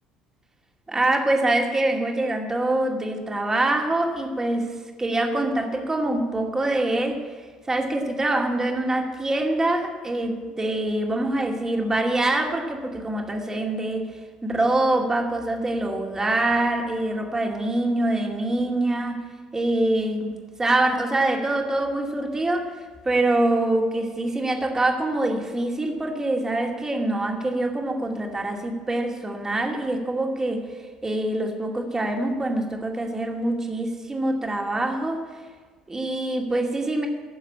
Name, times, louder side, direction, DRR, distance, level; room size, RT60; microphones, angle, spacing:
voice 1, 0.9-7.2 7.7-14.1 14.4-19.2 19.5-20.3 20.6-30.7 31.0-35.2 35.9-37.1, right 2 dB, 20° right, 2 dB, 2.4 m, -24 dB
14.5 x 7.3 x 8.7 m, 1.5 s
figure-of-eight pair, 55°, 3 cm